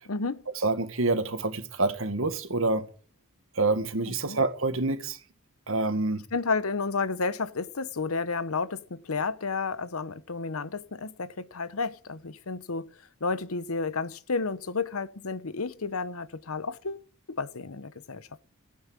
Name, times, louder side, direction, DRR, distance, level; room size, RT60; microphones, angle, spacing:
voice 1, 0.1-0.5 4.2-4.4 6.3-12.9 13.2-18.4, left 4 dB, 85° left, 1.0 m, -31 dB
voice 2, 0.6-2.9 3.6-5.2 5.7-6.2, right 2 dB, 70° right, 1.9 m, -27 dB
16.0 x 8.8 x 8.3 m
head